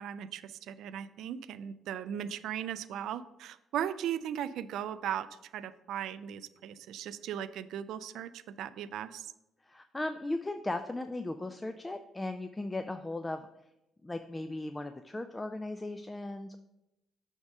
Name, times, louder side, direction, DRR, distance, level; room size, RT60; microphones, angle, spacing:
voice 1, 0.0-5.3 5.5-9.3, right 10 dB, 80° right, 15 dB, 0.3 m, -37 dB
voice 2, 9.6-13.5 14.0-16.6, left 2 dB, 15° left, 8 dB, 0.3 m, -37 dB
6.3 x 3.6 x 5.4 m, 0.90 s
cardioid pair, 90°, 0 cm